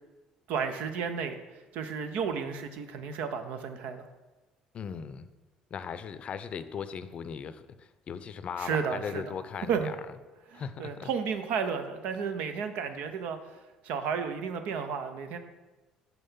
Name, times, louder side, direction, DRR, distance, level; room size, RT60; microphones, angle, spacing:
voice 1, 0.5-1.4 1.7-4.0 8.6-9.3 9.7-9.9 10.5-13.4 13.8-15.4, right 6 dB, 70° right, 8 dB, 0.7 m, -32 dB
voice 2, 4.7-5.3 5.7-9.9 10.5-11.1, left 7 dB, 50° left, 13 dB, 0.5 m, -38 dB
6.0 x 5.4 x 5.6 m, 1.1 s
hypercardioid pair, 60°, 3 cm